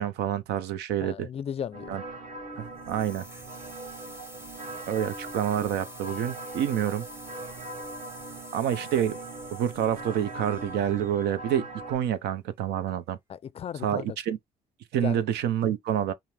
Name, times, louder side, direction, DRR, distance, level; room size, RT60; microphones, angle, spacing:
voice 1, 0.0-1.3 1.9-2.0 2.6-3.2 4.9-7.0 8.5-9.2 9.5-13.2 13.8-14.4 14.9-16.1, right 10 dB, 80° right, 0.6 m, -28 dB
voice 2, 1.0-2.0 13.3-14.2 15.0-15.2, left 8 dB, 35° left, 0.4 m, -35 dB
sound 1, 1.7-12.0, right 2 dB, 45° right, 2.6 m, -41 dB
sound 2, 2.8-11.7, right 1 dB, 15° right, 1.0 m, -49 dB
5.7 x 2.1 x 3.2 m
cardioid pair, 110°, 17 cm